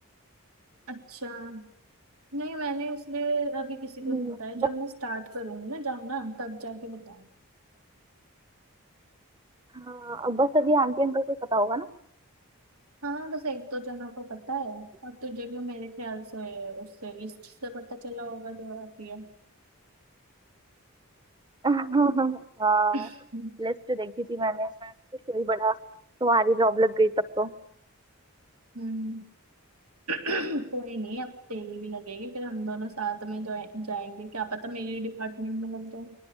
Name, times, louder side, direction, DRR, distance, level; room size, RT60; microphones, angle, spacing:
voice 1, 0.9-1.7 2.3-7.3 13.0-19.3 22.9-23.6 28.7-29.3 30.1-36.1, right 2 dB, 85° right, 6 dB, 3.2 m, -34 dB
voice 2, 4.0-4.7 9.7-11.9 21.6-23.1 23.6-24.9 25.3-25.8 26.2-27.5, right 2 dB, 20° right, 14 dB, 1.1 m, -25 dB
30.0 x 23.0 x 8.2 m, 0.67 s
head